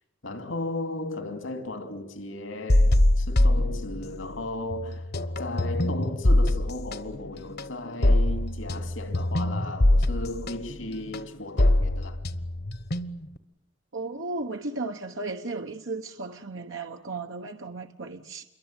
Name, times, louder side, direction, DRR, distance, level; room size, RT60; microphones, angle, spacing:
voice 1, 0.2-5.1 5.4-12.2, left 2 dB, 85° left, 2.9 m, -35 dB
sound 1, 2.7-4.4 4.7-13.4, left 1 dB, 55° left, 1.1 m, -23 dB
voice 2, 13.9-18.4, right 3 dB, 80° right, 1.2 m, -35 dB
27.5 x 23.0 x 9.0 m
head